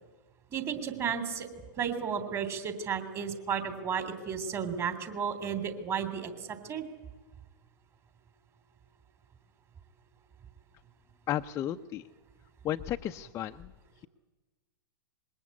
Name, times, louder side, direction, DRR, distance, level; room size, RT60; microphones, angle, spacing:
voice 1, 0.5-1.5 1.8-6.8, right 7 dB, 25° right, 10 dB, 3.3 m, -33 dB
voice 2, 11.3-12.0 12.6-13.7, left 11 dB, 25° left, 5 dB, 0.7 m, -33 dB
26.0 x 21.5 x 8.5 m, 1.2 s
figure-of-eight pair, 110°, 11 cm